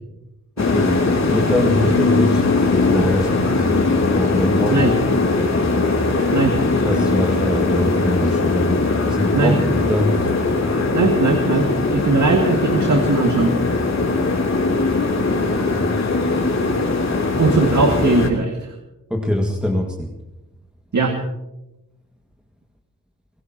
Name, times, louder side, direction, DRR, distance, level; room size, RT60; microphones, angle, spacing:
sound 1, 0.6-18.3, left 3 dB, 50° left, 3.0 m, -20 dB
voice 1, 0.6-2.5 2.9-5.5 6.8-10.3 10.6-11.0 15.7-16.0 19.1-20.1, left 1 dB, 5° right, 1 dB, 1.8 m, -24 dB
voice 2, 10.9-13.5 17.4-18.7 20.9-21.2, right 3 dB, 55° right, 3 dB, 2.0 m, -19 dB
28.5 x 16.0 x 2.9 m, 0.96 s
supercardioid pair, 45°, 36 cm